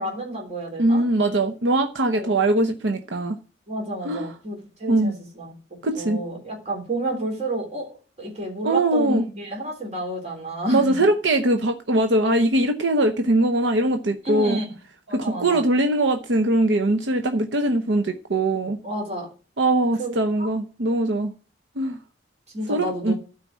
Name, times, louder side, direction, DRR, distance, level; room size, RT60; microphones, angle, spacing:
voice 1, 0.0-1.0 2.1-2.3 3.7-5.5 5.9-7.9 8.2-11.0 14.3-14.7 15.1-15.6 18.8-19.3 20.0-20.5 22.5-23.1, right 1 dB, 40° right, 3.5 m, -30 dB
voice 2, 0.8-3.4 4.0-4.3 4.9-5.1 5.8-6.2 8.6-9.2 10.7-14.6 15.1-18.8 19.6-21.3 21.8-22.0 22.7-23.1, right 1 dB, 85° right, 0.9 m, -21 dB
12.5 x 5.0 x 7.4 m
head